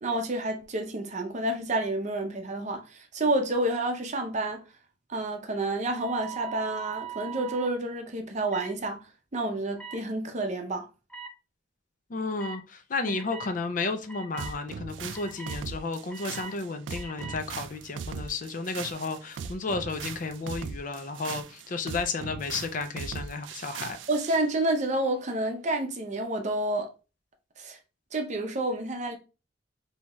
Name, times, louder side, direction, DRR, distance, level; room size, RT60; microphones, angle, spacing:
voice 1, 0.0-4.6 5.1-9.0 9.3-10.9 13.0-13.1 24.1-26.9 27.6-27.8 28.1-29.2, right 2 dB, 40° right, 0.6 m, -29 dB
sound 1, 5.9-7.7 8.5-8.7 9.8-10.0 11.1-11.3 12.4-12.6 13.1-13.5 14.1-14.5 15.1-15.6 16.1-16.5 16.9-17.4, right 7 dB, 5° left, 1.0 m, -40 dB
voice 2, 12.1-24.0, left 3 dB, 45° left, 0.5 m, -33 dB
sound 2, 14.4-24.4, right 6 dB, 90° right, 0.3 m, -39 dB
3.4 x 2.8 x 3.0 m
head